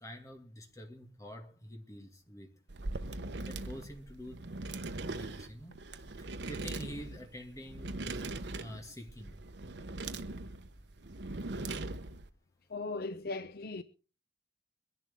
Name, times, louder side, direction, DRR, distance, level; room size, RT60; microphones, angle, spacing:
voice 1, 0.0-2.5 3.5-4.4 4.8-5.8 6.2-8.1 8.6-9.9, equal, 15° left, 2.2 m, -47 dB
sound 1, 2.7-12.3, right 2 dB, 75° right, 0.9 m, -41 dB
voice 2, 12.7-13.8, left 3 dB, 55° left, 0.7 m, -38 dB
23.0 x 11.0 x 3.6 m
head